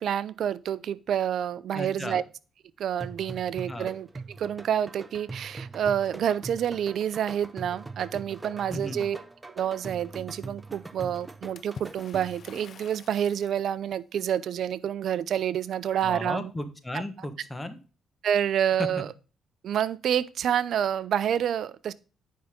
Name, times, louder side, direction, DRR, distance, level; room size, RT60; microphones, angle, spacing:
voice 1, 0.0-2.2 2.8-4.1 4.4-9.2 9.6-16.5 18.2-19.1 19.6-21.9, right 9 dB, 65° right, 0.5 m, -28 dB
voice 2, 1.7-2.2 3.7-3.9 8.7-9.1 16.0-17.8 18.8-18.9, left 1 dB, 15° left, 1.4 m, -34 dB
sound 1, 3.0-12.5, right 3 dB, 20° right, 0.8 m, -42 dB
Water / Splash splatter, 11.6-13.6, left 6 dB, 50° left, 0.6 m, -47 dB
9.4 x 5.7 x 3.6 m
cardioid pair, 90°, 0 cm